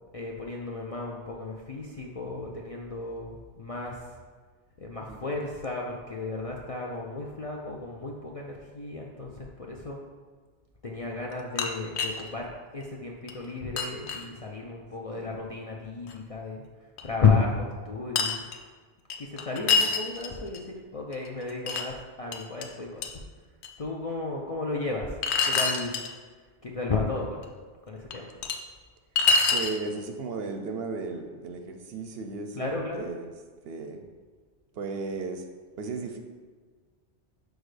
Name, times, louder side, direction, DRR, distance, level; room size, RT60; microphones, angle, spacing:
voice 1, 0.1-4.2 4.8-10.0 10.8-16.6 17.0-18.4 19.2-20.6 20.9-23.2 23.8-25.1 25.4-25.9 26.6-27.5 27.9-28.3 32.6-33.1, left 4 dB, 50° left, -1 dB, 0.4 m, -32 dB
sound 1, 11.3-12.3 12.8-12.9 13.3-13.4 13.8-14.3 16.1-16.2 17.0-17.1 18.2-18.6 19.1-20.6 21.1-21.8 22.3-22.6 23.0-23.1 23.6-23.7 25.2-26.1 27.4-27.5 28.1-28.6 29.2-29.8, left 4 dB, 70° left, 0.9 m, -26 dB
voice 2, 19.6-19.9 29.5-33.3 33.6-34.1 34.7-35.5 35.8-36.2, right 4 dB, 65° right, 6 dB, 0.7 m, -35 dB
6.3 x 5.0 x 3.2 m, 1.5 s
omnidirectional pair, 1.2 m